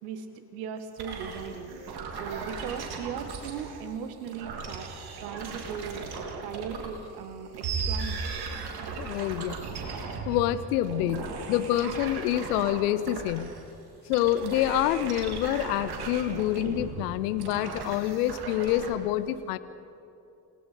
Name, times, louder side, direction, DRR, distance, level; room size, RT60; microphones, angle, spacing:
voice 1, 0.0-1.7 2.2-4.9 5.2-6.1 6.4-8.2, right 7 dB, 70° right, 9 dB, 1.7 m, -38 dB
sound 1, 1.0-3.9 4.3-7.1 7.5-13.7 14.1-18.9, right 5 dB, 50° right, 3.1 m, -37 dB
voice 2, 9.0-9.6 10.3-13.5 14.1-19.6, left 12 dB, 70° left, 15 dB, 0.9 m, -27 dB
28.0 x 18.0 x 5.2 m, 2.8 s
figure-of-eight pair, 45°, 48 cm